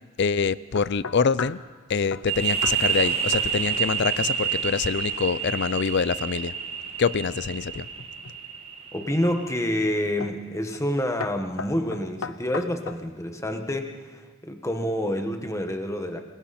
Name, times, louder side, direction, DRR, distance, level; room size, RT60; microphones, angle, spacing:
voice 1, 0.2-1.6 1.9-6.5 7.0-7.9, left 5 dB, 60° left, 18 dB, 0.5 m, -25 dB
sound 1, 0.8-1.7 2.1-2.3 2.6-2.8 3.0-3.8 4.0-4.4 7.7-8.4 9.0-9.4 10.2-10.5 10.7-10.9 11.2-13.1, left 5 dB, 90° left, 0.8 m, -36 dB
sound 2, 2.3-9.7, right 7 dB, 30° right, 1.6 m, -29 dB
voice 2, 8.9-16.2, left 1 dB, 15° left, 5 dB, 1.5 m, -28 dB
28.0 x 21.5 x 4.3 m, 1.4 s
head